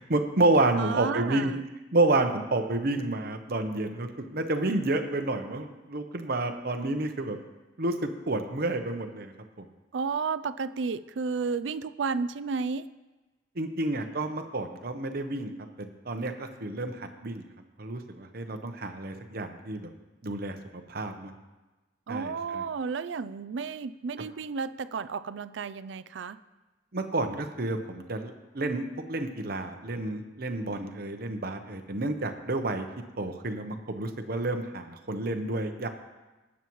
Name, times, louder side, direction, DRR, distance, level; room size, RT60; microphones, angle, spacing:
voice 1, 0.1-1.5 1.9-7.4 7.8-9.3 9.6-9.7 13.6-15.5 15.8-17.4 17.8-19.9 20.2-20.6 20.9-21.3 22.1-22.6 26.9-32.9 33.2-35.9, right 2 dB, 50° right, 6 dB, 0.9 m, -29 dB
voice 2, 0.7-1.6 9.9-12.9 22.1-26.4, right 5 dB, 70° right, 15 dB, 0.4 m, -32 dB
20.0 x 7.3 x 3.1 m, 1.1 s
head